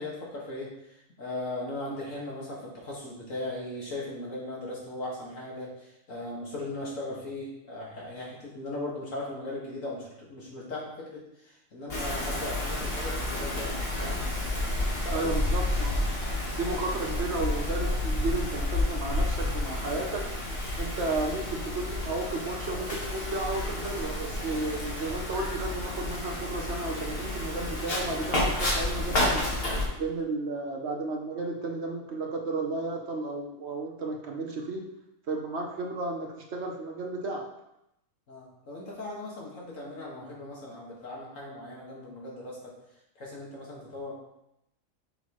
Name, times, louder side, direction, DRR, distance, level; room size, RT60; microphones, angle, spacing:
voice 1, 0.0-14.2 15.0-15.6 29.8-30.0 38.3-42.7 43.2-44.1, left 2 dB, 65° left, -4 dB, 2.1 m, -38 dB
Wind, 11.9-29.8, left 1 dB, 45° left, 1.7 m, -30 dB
voice 2, 15.1-16.0 16.6-20.3 20.8-29.5 30.0-34.9 35.3-37.5, right 2 dB, 55° right, 2 dB, 1.0 m, -33 dB
6.9 x 5.8 x 3.0 m, 0.85 s
omnidirectional pair, 1.4 m